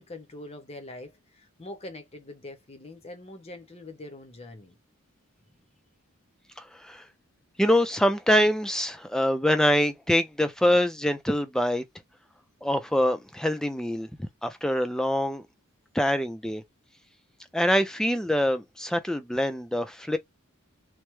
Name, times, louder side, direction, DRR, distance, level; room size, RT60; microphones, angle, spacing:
voice 1, 0.0-4.8, left 2 dB, 30° left, 0.7 m, -43 dB
voice 2, 6.6-7.1 7.6-11.8 12.6-15.4 15.9-16.6 17.5-20.2, equal, 5° left, 0.3 m, -25 dB
3.2 x 2.1 x 3.0 m
head